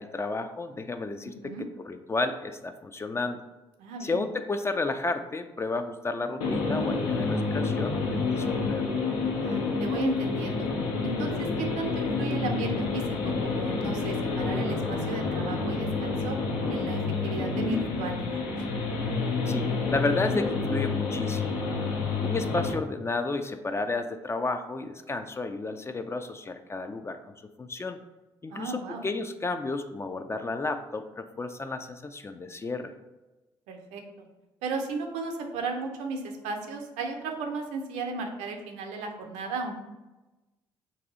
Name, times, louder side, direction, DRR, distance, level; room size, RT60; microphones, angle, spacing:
voice 1, 0.0-3.4 4.0-8.9 19.5-21.6 22.2-27.2 27.6-28.0 28.4-32.9, left 3 dB, 20° left, 8 dB, 0.3 m, -32 dB
voice 2, 3.8-4.2 9.4-10.7 11.0-16.4 16.7-18.5 28.5-29.0 33.7-34.3 34.6-39.8, right 3 dB, 70° right, 3 dB, 0.5 m, -35 dB
sound 1, 6.4-22.7, left 4 dB, 75° left, 0.6 m, -29 dB
2.6 x 2.3 x 3.9 m, 1.1 s
hypercardioid pair, 45°, 13 cm